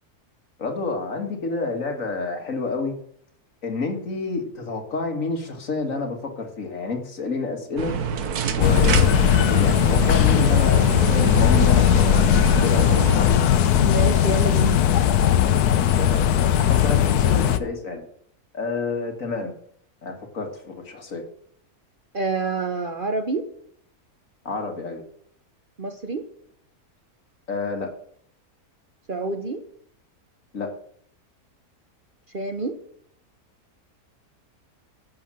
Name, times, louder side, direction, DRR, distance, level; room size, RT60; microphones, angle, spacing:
voice 1, 0.6-3.0 3.6-8.0 8.6-9.2 9.5-13.4 16.0-16.3 16.6-18.1 18.5-19.5 20.0-21.2 24.4-25.1 27.5-27.9 30.5-30.7, left 3 dB, 60° left, 4 dB, 2.3 m, -29 dB
sound 1, 7.8-13.2, right 6 dB, 85° right, 1.5 m, -27 dB
sound 2, 8.6-17.6, left 10 dB, 90° left, 1.3 m, -18 dB
voice 2, 13.8-14.8 22.1-23.5 25.8-26.3 29.1-29.6 32.3-32.8, right 3 dB, 40° right, 7 dB, 0.9 m, -27 dB
14.0 x 6.7 x 7.6 m, 0.66 s
omnidirectional pair, 1.6 m